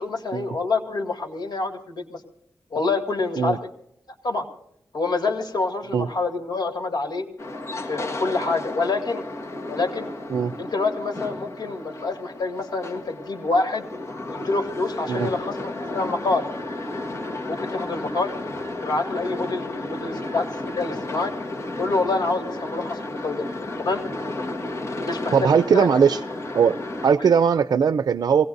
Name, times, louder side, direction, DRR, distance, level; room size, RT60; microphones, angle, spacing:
voice 1, 0.0-2.2 2.7-3.7 4.2-4.5 4.9-7.3 7.9-9.2 9.7-10.1 10.6-13.9 14.3-16.4 17.4-18.3 18.8-21.3 21.8-23.5 23.8-24.0 25.0-25.3 25.7-25.9 27.2-27.3, left 3 dB, 85° left, 4 dB, 2.2 m, -26 dB
sound 1, 7.4-27.1, left 2 dB, 45° left, 1.5 m, -33 dB
voice 2, 25.3-26.2 26.5-26.8 27.0-28.5, right 7 dB, 70° right, 13 dB, 0.5 m, -19 dB
24.5 x 18.0 x 2.6 m, 0.74 s
wide cardioid pair, 120°, 7 cm